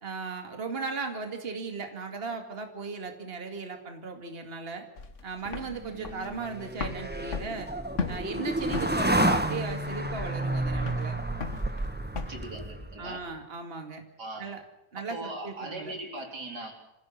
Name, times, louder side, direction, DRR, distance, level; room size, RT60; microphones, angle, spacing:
voice 1, 0.0-4.9 5.2-7.7 8.1-11.2 13.0-14.0 14.4-14.6 14.9-15.9, right 4 dB, 35° right, 5 dB, 2.5 m, -37 dB
sound 1, 5.0-12.5, left 4 dB, 50° left, 1.9 m, -38 dB
sound 2, 5.7-13.1, right 1 dB, 5° right, 1.4 m, -30 dB
voice 2, 12.3-13.2 14.2-14.4 15.1-16.7, right 2 dB, 80° right, 2 dB, 4.7 m, -39 dB
27.5 x 16.0 x 7.5 m, 0.94 s
omnidirectional pair, 1.7 m